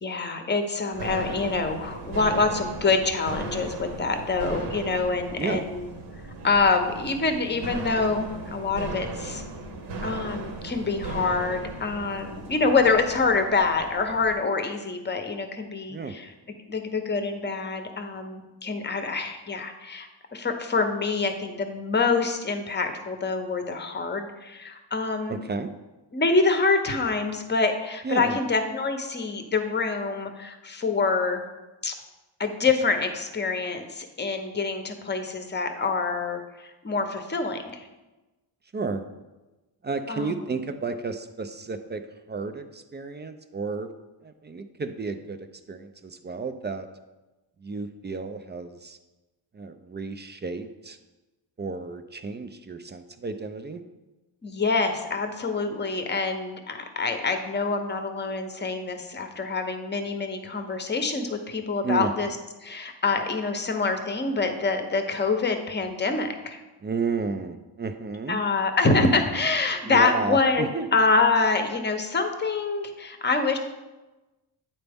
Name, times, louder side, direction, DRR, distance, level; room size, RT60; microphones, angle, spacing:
voice 1, 0.0-5.9 6.4-9.4 10.0-16.3 16.7-25.4 26.1-31.4 31.8-31.9 32.4-37.9 40.1-40.4 54.4-62.3 62.6-66.6 68.3-73.6, left 4 dB, 25° left, 6 dB, 0.7 m, -26 dB
sound 1, 0.9-14.4, right 2 dB, 65° right, 1.0 m, -37 dB
voice 2, 25.3-25.7 28.0-28.4 38.7-39.0 39.8-42.0 42.3-43.9 44.2-46.9 47.6-49.0 49.5-51.0 51.6-53.8 61.8-62.1 66.8-68.4 69.9-70.9, right 4 dB, 25° right, 9 dB, 0.4 m, -32 dB
8.8 x 4.0 x 3.5 m, 1.1 s
cardioid pair, 90°, 46 cm